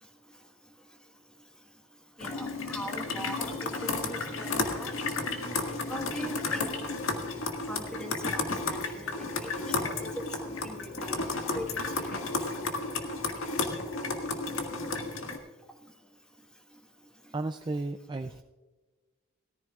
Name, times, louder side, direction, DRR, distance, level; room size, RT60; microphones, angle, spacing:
sound 1, 2.2-15.4, left 3 dB, 80° left, 1.7 m, -33 dB
voice 1, 2.2-3.5 3.8-4.9 5.9-6.7 7.7-10.1 10.4-11.3 11.5-12.2, equal, 5° left, 2 dB, 1.4 m, -41 dB
voice 2, 17.3-18.4, right 2 dB, 20° right, 7 dB, 0.3 m, -34 dB
18.0 x 14.0 x 2.4 m, 1.3 s
head